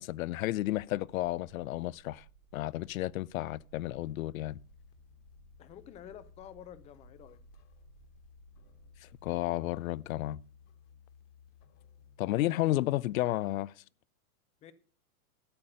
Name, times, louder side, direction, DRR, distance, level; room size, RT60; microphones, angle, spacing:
voice 1, 0.0-2.2 2.5-4.6 9.0-10.4 12.2-13.7, left 15 dB, 65° left, 0.6 m, -32 dB
sound 1, 0.7-9.5, right 11 dB, 60° right, 2.3 m, -62 dB
sound 2, 4.5-12.2, left 8 dB, 30° left, 1.6 m, -59 dB
voice 2, 5.6-7.4 14.6-14.7, left 10 dB, 15° left, 0.6 m, -49 dB
13.0 x 7.4 x 6.6 m
hypercardioid pair, 145°, 45 cm